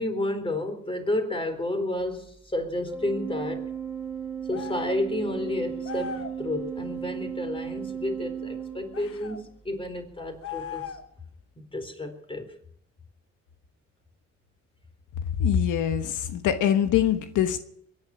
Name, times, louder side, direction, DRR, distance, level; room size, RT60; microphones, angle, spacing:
voice 1, 0.0-3.6 4.5-10.8 11.6-12.5, left 1 dB, 15° left, 6 dB, 4.1 m, -31 dB
Organ, 2.9-9.4, right 8 dB, 10° right, 5.2 m, -35 dB
sound 1, 4.5-5.0 5.8-6.4 8.9-9.4 10.4-11.2, left 7 dB, 50° left, 1.3 m, -38 dB
voice 2, 15.4-17.6, left 9 dB, 85° left, 8 dB, 1.3 m, -23 dB
22.5 x 10.5 x 5.8 m, 0.71 s
cardioid pair, 90°, 30 cm